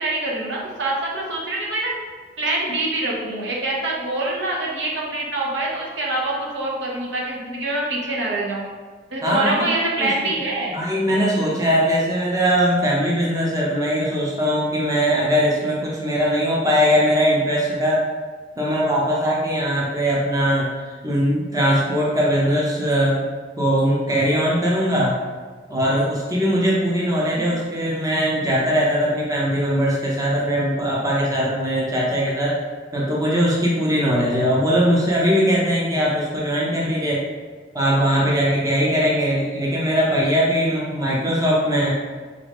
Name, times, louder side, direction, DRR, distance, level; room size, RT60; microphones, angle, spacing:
voice 1, 0.0-1.9 2.4-8.6 9.1-10.8 27.3-27.5, right 2 dB, 70° right, -3 dB, 1.0 m, -25 dB
voice 2, 9.2-9.7 10.0-10.3 10.7-18.0 18.6-20.7 21.0-23.2 23.6-25.1 25.7-32.5 32.9-37.2 37.7-42.0, equal, 20° right, -5 dB, 0.7 m, -20 dB
3.9 x 3.8 x 3.5 m, 1.4 s
head